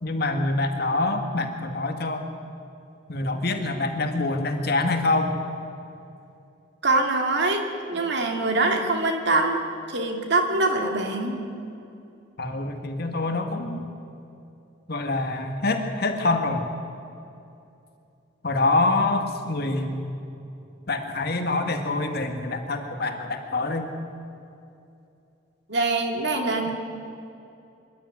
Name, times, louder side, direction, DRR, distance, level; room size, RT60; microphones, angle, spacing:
voice 1, 0.0-2.3 3.1-5.4 12.4-13.9 14.9-16.7 18.4-20.0 20.9-23.9, left 2 dB, 55° left, 5 dB, 2.0 m, -25 dB
voice 2, 6.8-9.6 9.9-11.4 25.7-26.7, right 2 dB, 60° right, 3 dB, 2.5 m, -24 dB
25.0 x 12.5 x 9.6 m, 2.7 s
head